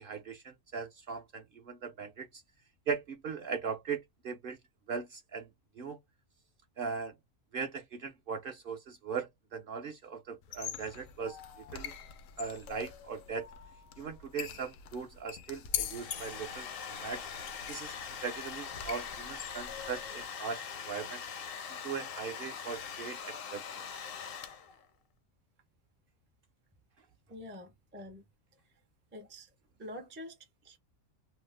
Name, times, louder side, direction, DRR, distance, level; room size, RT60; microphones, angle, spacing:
voice 1, 0.0-2.4 2.9-4.6 4.9-5.5 5.8-6.0 6.8-7.1 7.5-11.4 11.7-11.9 12.4-13.5 14.0-17.3 17.7-18.0 18.2-21.2 21.8-23.6, right 5 dB, 55° right, 0.7 m, -39 dB
sound 1, 10.4-20.2, left 9 dB, 85° left, 1.0 m, -43 dB
Domestic sounds home sounds, 15.6-24.9, left 7 dB, 60° left, 0.7 m, -42 dB
voice 2, 27.3-28.2 29.1-29.5 29.8-30.4 30.6-30.8, left 1 dB, 15° right, 0.4 m, -46 dB
2.9 x 2.0 x 3.2 m
omnidirectional pair, 1.4 m